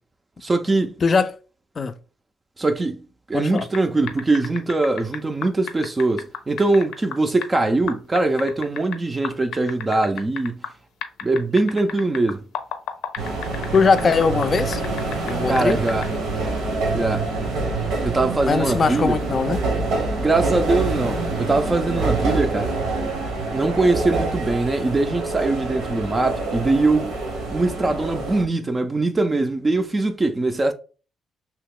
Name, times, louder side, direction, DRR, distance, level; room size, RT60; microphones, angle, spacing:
voice 1, 0.4-1.0 2.6-10.6 11.2-12.5 15.5-16.1 16.9-17.3 18.0-19.2 20.2-22.7 23.5-30.7, right 2 dB, 25° right, 0.4 m, -22 dB
voice 2, 1.0-1.4 1.8-1.9 3.3-3.7 13.7-14.8 15.2-15.8 18.5-19.6, left 5 dB, 40° left, 0.4 m, -20 dB
sound 1, 3.6-3.8 4.1-7.6 7.9-9.0 9.2-10.7 11.0-15.3 15.6-16.1, left 8 dB, 85° left, 0.6 m, -31 dB
sound 2, 13.2-28.4, right 3 dB, 80° right, 1.0 m, -26 dB
2.9 x 2.3 x 3.6 m
cardioid pair, 90°, 0 cm